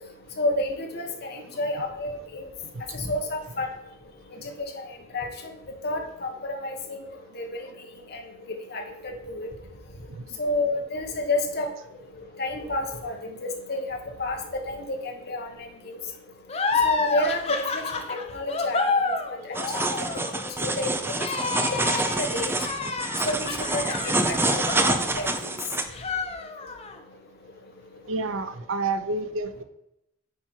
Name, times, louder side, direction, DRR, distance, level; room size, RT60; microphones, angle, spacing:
voice 1, 0.4-2.4 2.9-3.7 4.7-4.8 5.1-5.3 5.8-7.0 7.3-7.5 8.7-9.5 10.4-11.7 12.4-13.2 13.4-13.8 14.2-15.5 16.8-17.8 18.1-19.1 20.1-20.3 20.6-20.9 21.4-21.8 22.2-22.5 23.2-25.3, left 2 dB, 55° left, 3 dB, 1.2 m, -29 dB
voice 2, 2.6-3.2 4.4-4.5 10.1-10.4 21.6-21.7 28.1-29.6, right 3 dB, 85° right, 10 dB, 0.6 m, -31 dB
sound 1, 16.5-25.6 25.9-27.0, left 4 dB, 30° left, 0.7 m, -29 dB
sound 2, 19.5-25.8, right 2 dB, 10° right, 0.5 m, -27 dB
8.5 x 4.5 x 4.4 m, 0.84 s
head